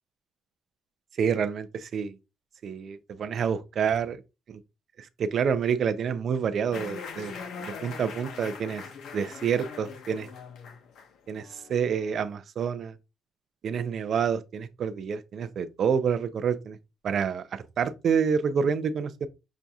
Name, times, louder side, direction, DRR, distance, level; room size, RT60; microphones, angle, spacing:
voice 1, 1.2-2.1 2.6-4.2 4.5-4.6 5.0-7.3 7.6-8.8 9.1-10.3 11.3-12.9 13.6-16.8 17.0-19.3, right 7 dB, 45° right, 0.4 m, -28 dB
sound 1, 6.7-12.3, left 5 dB, 65° left, 0.8 m, -42 dB
5.9 x 2.6 x 2.3 m
cardioid pair, 145°, 0 cm